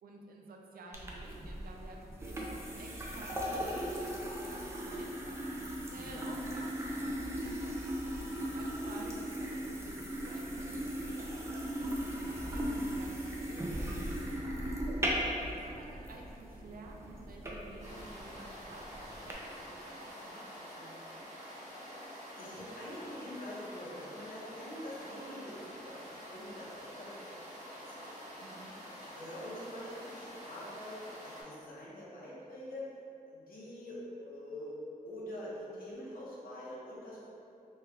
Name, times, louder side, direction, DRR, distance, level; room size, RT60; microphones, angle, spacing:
voice 1, 0.0-7.9 8.5-14.6 15.4-21.1 28.4-28.7, right 2 dB, 80° right, 0 dB, 0.4 m, -52 dB
sound 1, 0.9-19.3, equal, 20° right, 0.4 m, -38 dB
sound 2, 17.8-31.4, equal, 55° right, 1.2 m, -47 dB
voice 2, 22.4-27.1 27.6-28.1 28.9-30.9 31.2-32.9 33.3-37.3, left 1 dB, 75° left, -6 dB, 0.8 m, -45 dB
3.2 x 2.3 x 3.3 m, 2.7 s
wide cardioid pair, 110°, 15 cm